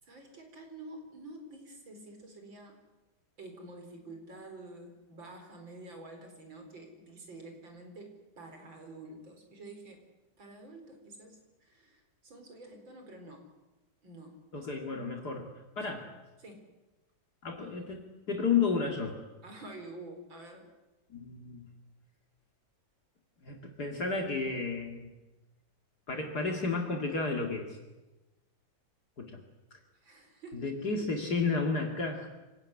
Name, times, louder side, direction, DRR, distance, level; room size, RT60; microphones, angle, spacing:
voice 1, 0.0-2.8 3.4-10.0 10.4-13.5 14.0-14.4 14.8-15.0 16.4-16.7 19.4-20.7 30.0-30.7, right 2 dB, 80° right, 4 dB, 5.2 m, -48 dB
voice 2, 14.5-15.4 15.8-16.1 17.4-19.2 21.1-21.7 23.4-25.1 26.1-27.8 29.2-29.4 30.5-32.3, left 4 dB, 55° left, 2 dB, 2.8 m, -32 dB
25.0 x 18.0 x 9.8 m, 1.1 s
omnidirectional pair, 2.1 m